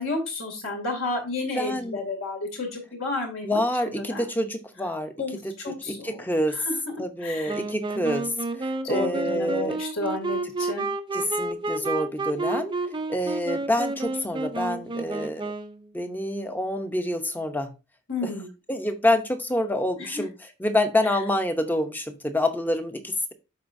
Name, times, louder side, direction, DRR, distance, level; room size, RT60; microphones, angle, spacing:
voice 1, 0.0-4.2 5.2-6.9 7.2-7.6 8.8-10.9 18.1-18.5 20.0-20.2, left 2 dB, 65° left, 1 dB, 2.5 m, -32 dB
voice 2, 1.6-2.0 3.4-5.1 5.4-6.6 7.0-9.8 11.1-12.7 13.1-15.5 15.9-17.7 18.2-18.3 18.7-20.3 20.6-23.3, left 1 dB, 10° left, 7 dB, 0.8 m, -27 dB
Wind instrument woodwind instrument, 7.5-15.9, right 2 dB, 25° right, 0.5 m, -30 dB
12.0 x 4.4 x 2.6 m, 0.28 s
head